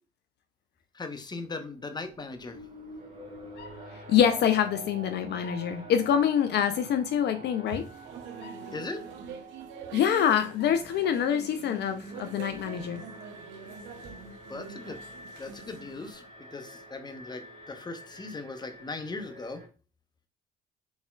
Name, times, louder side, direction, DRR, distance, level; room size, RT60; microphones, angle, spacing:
voice 1, 0.9-2.6 8.7-9.0 14.5-15.0 15.4-19.6, left 3 dB, 20° left, 8 dB, 0.7 m, -39 dB
Alarm, 1.8-19.7, right 2 dB, 40° right, 1.8 m, -47 dB
voice 2, 3.6-7.8 8.4-8.5 9.9-13.0, left 9 dB, 60° left, 9 dB, 0.5 m, -26 dB
sound 1, 7.7-16.1, right 6 dB, 75° right, 0.6 m, -45 dB
4.1 x 3.6 x 2.2 m, 0.34 s
supercardioid pair, 60°, 20 cm